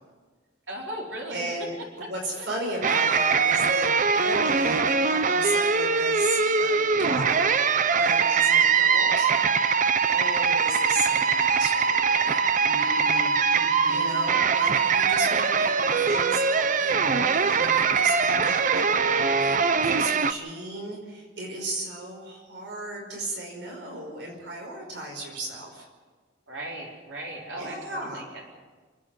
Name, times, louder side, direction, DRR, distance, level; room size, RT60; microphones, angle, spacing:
voice 1, 0.7-1.5 2.3-2.5 12.6-14.1 26.5-28.5, right 1 dB, 85° right, -2 dB, 4.3 m, -38 dB
voice 2, 1.3-9.3 10.0-12.4 13.9-25.9 27.6-28.3, right 2 dB, 70° right, 0 dB, 5.2 m, -35 dB
sound 1, 2.8-20.3, right 5 dB, 45° right, 0.7 m, -22 dB
28.0 x 9.7 x 9.4 m, 1.4 s
head